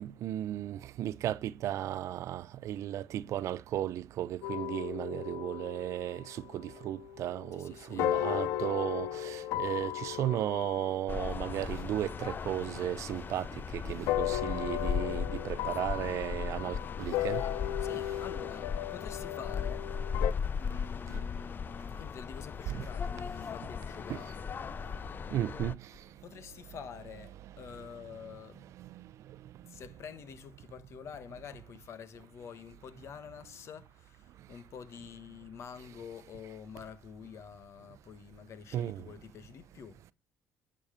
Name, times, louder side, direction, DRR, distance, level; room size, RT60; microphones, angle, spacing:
voice 1, 0.0-17.4 24.1-24.2 25.3-25.8 38.7-39.0, right 12 dB, 70° right, 0.6 m, -35 dB
sound 1, 4.4-7.7 8.0-12.9 14.1-20.3, left 13 dB, 85° left, 0.6 m, -36 dB
voice 2, 7.5-8.2 17.8-19.9 20.6-24.9 26.2-28.7 29.7-40.0, left 7 dB, 60° left, 1.4 m, -47 dB
sound 2, 11.1-25.7, left 6 dB, 40° left, 0.5 m, -37 dB
11.5 x 5.7 x 5.1 m
supercardioid pair, 75°, 5 cm